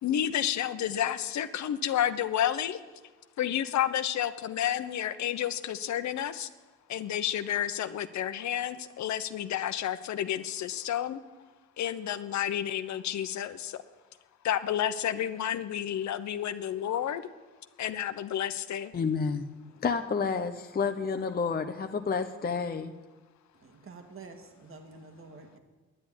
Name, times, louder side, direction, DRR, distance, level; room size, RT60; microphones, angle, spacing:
voice 1, 0.0-2.8 3.4-6.5 6.9-11.2 11.8-13.8 14.4-17.2 17.8-18.9, left 10 dB, 65° left, 12 dB, 0.9 m, -30 dB
voice 2, 18.9-19.5 19.8-22.9, left 5 dB, 30° left, 6 dB, 0.8 m, -30 dB
voice 3, 23.5-25.6, right 4 dB, 45° right, 4 dB, 2.0 m, -48 dB
10.0 x 9.5 x 10.0 m, 1.3 s
cardioid pair, 90°, 30 cm